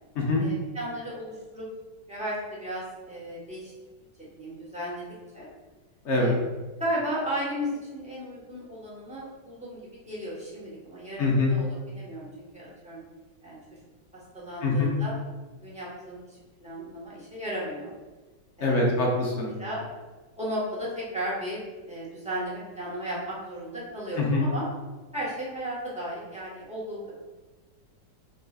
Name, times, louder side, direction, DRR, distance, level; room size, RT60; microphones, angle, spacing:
voice 1, 0.4-1.7 2.1-3.7 4.2-5.0 5.3-5.5 6.1-6.4 6.8-13.0 13.4-13.6 14.1-15.1 15.6-17.9 18.6-18.9 19.6-19.8 20.4-24.7 25.1-27.2, equal, 5° right, -7 dB, 0.8 m, -35 dB
voice 2, 6.0-6.4 11.2-11.5 14.6-14.9 18.6-19.5 24.2-24.4, left 2 dB, 55° left, -2 dB, 0.8 m, -24 dB
4.6 x 4.0 x 2.4 m, 1.2 s
omnidirectional pair, 2.0 m